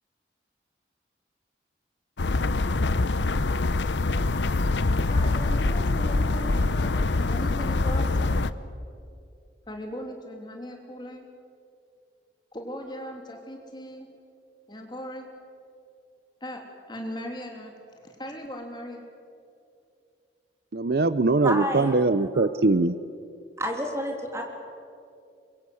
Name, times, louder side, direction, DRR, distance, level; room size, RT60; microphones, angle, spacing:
sound 1, 2.2-8.5, left 2 dB, 85° left, 0.8 m, -24 dB
voice 1, 5.1-8.4 9.7-11.3 12.5-14.1 14.7-15.3 16.4-17.7 18.0-19.0, equal, 25° left, 2 dB, 3.2 m, -38 dB
voice 2, 20.7-22.9, right 3 dB, 60° right, 14 dB, 0.6 m, -22 dB
voice 3, 21.4-21.9 23.6-24.4, equal, 15° right, 2 dB, 3.3 m, -29 dB
24.5 x 22.5 x 7.9 m, 2.5 s
head